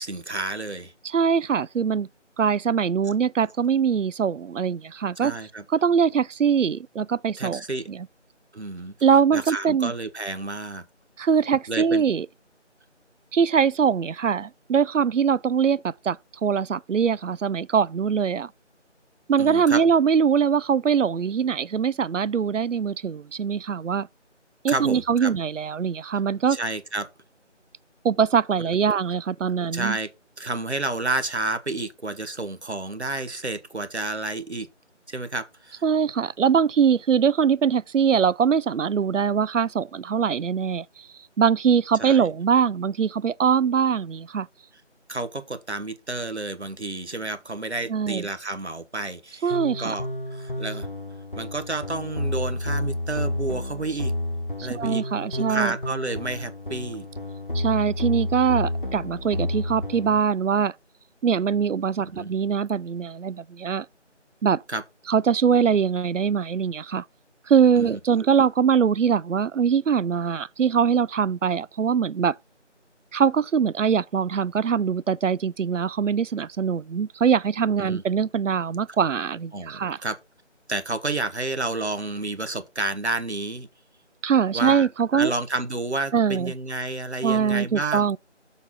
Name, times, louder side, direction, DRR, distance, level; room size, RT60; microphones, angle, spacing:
voice 1, 0.0-0.9 5.2-5.6 7.4-7.9 8.5-8.9 9.3-10.8 11.7-12.0 19.4-19.8 24.7-25.3 26.5-27.1 28.6-28.8 29.7-30.1 30.4-34.7 35.1-35.8 42.0-42.2 45.1-50.9 51.4-54.1 54.6-55.0 55.4-57.1 62.0-62.3 64.7-64.8 67.7-68.3 77.8-78.0 79.5-80.2 80.7-83.7 84.5-88.1, right 2 dB, 65° right, 1.2 m, -30 dB
voice 2, 1.0-2.1 2.4-5.4 5.7-7.6 7.9-8.1 9.0-9.9 11.2-12.3 13.3-16.2 16.4-18.5 19.3-24.1 24.6-26.6 28.0-30.0 35.8-41.1 41.4-44.5 47.9-48.3 49.4-49.9 54.6-55.7 57.5-60.7 61.2-63.9 64.4-64.6 65.1-67.0 67.5-72.3 73.1-80.0 84.2-85.3 86.1-86.5 87.2-88.2, right 7 dB, 90° right, 0.5 m, -22 dB
sound 1, 49.5-60.2, left 1 dB, 45° left, 1.1 m, -30 dB
7.0 x 4.1 x 5.4 m
figure-of-eight pair, 175°, 36 cm